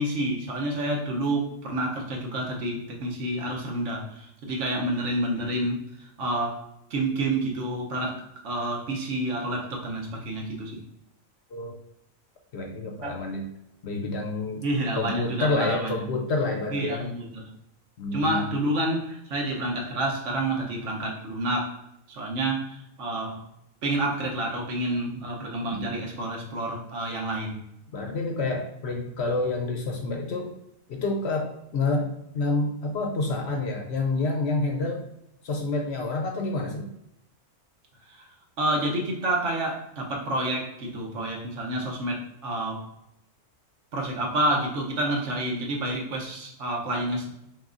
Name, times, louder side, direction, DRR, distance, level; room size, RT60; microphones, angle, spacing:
voice 1, 0.0-6.6 6.9-10.8 13.0-13.2 14.6-16.1 16.7-17.5 18.1-21.8 22.1-23.4 23.8-27.6 38.1-38.3 38.6-42.9 43.9-47.3, right 1 dB, 60° right, -1 dB, 1.1 m, -29 dB
voice 2, 12.5-13.5 13.8-14.6 14.9-17.1 18.0-18.5 25.7-25.9 27.9-30.5 30.9-35.0 35.4-36.9, left 3 dB, 60° left, 1 dB, 0.8 m, -28 dB
5.7 x 2.4 x 2.5 m, 0.81 s
omnidirectional pair, 1.4 m